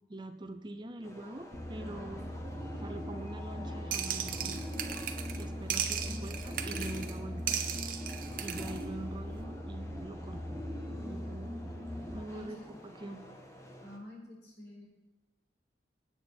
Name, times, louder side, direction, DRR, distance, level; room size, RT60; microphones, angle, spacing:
voice 1, 0.1-2.3 2.8-4.7 5.3-7.6 8.4-10.4 11.0-13.2, right 2 dB, 25° right, 8 dB, 0.7 m, -44 dB
sound 1, 1.0-14.0, equal, 15° left, 1.4 m, -52 dB
sound 2, 1.5-12.2, equal, ahead, 1.7 m, -40 dB
sound 3, 3.9-5.4 5.7-7.1 7.5-8.8, right 9 dB, 50° right, 0.9 m, -36 dB
voice 2, 12.3-12.6 13.2-13.3 13.8-14.9, left 1 dB, 65° left, -2 dB, 4.7 m, -48 dB
17.0 x 9.4 x 4.5 m, 1.0 s
head